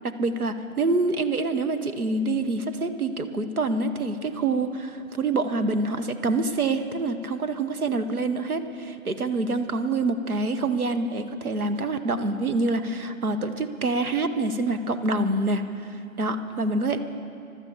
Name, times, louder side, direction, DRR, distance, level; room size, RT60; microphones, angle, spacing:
voice 1, 0.0-17.0, right 2 dB, 75° right, 9 dB, 1.3 m, -26 dB
15.5 x 12.5 x 7.2 m, 2.5 s
figure-of-eight pair, 170°, 44 cm